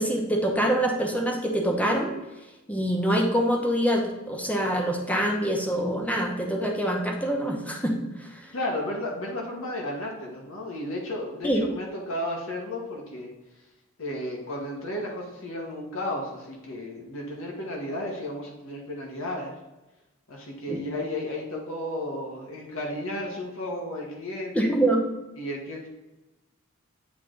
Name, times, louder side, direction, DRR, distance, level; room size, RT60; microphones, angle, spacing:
voice 1, 0.0-2.1 2.7-8.4 11.4-11.6 20.7-20.8 24.5-25.0, right 1 dB, 5° left, 1 dB, 0.9 m, -25 dB
voice 2, 8.5-13.3 14.0-19.5 20.3-24.7 25.4-25.9, left 1 dB, 70° left, -1 dB, 1.2 m, -33 dB
8.5 x 3.3 x 3.8 m, 1.0 s
head